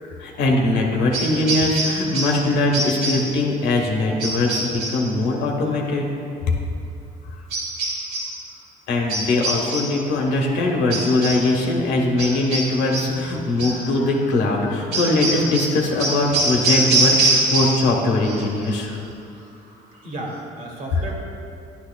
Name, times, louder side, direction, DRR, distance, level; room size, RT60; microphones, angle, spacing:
voice 1, 0.2-6.1 6.5-6.6 8.9-19.0, left 2 dB, 85° left, 0 dB, 1.3 m, -21 dB
sound 1, 1.1-2.5 2.7-3.4 4.2-5.1 7.5-8.4 9.1-10.0 10.9-11.5 12.2-13.2 13.6-13.9 14.9-18.0 18.2-18.7, right 2 dB, 70° right, 1.6 m, -24 dB
voice 2, 2.4-2.8 20.0-21.1, right 1 dB, 50° right, -1 dB, 1.8 m, -33 dB
11.0 x 8.8 x 2.3 m, 2.6 s
cardioid pair, 110°, 17 cm